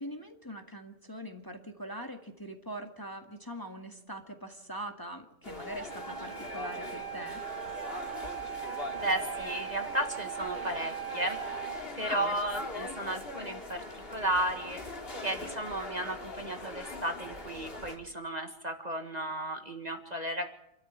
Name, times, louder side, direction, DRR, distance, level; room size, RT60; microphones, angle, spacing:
voice 1, 0.0-7.4 12.1-12.3, right 1 dB, 15° left, 4 dB, 1.8 m, -42 dB
sound 1, 5.4-18.0, left 2 dB, 45° left, 2.8 m, -41 dB
Wind instrument woodwind instrument, 5.9-11.8, right 10 dB, 85° left, 5.0 m, -40 dB
voice 2, 9.0-11.4 12.0-14.8 15.2-20.5, right 1 dB, 30° right, 5 dB, 1.7 m, -34 dB
27.5 x 13.0 x 8.6 m, 0.83 s
omnidirectional pair, 1.4 m